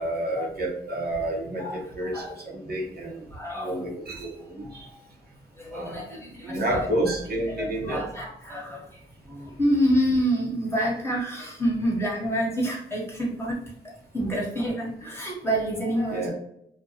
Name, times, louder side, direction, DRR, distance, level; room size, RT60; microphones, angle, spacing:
voice 1, 0.0-3.3 3.5-4.9 5.7-8.0 16.1-16.3, right 1 dB, 50° right, -2 dB, 0.9 m, -30 dB
voice 2, 1.6-2.3 3.3-3.9 4.6-5.0 5.6-6.9 7.5-8.9 9.3-13.5 14.1-16.3, equal, 10° left, -3 dB, 1.2 m, -28 dB
2.4 x 2.2 x 2.8 m, 0.74 s
supercardioid pair, 50°, 20 cm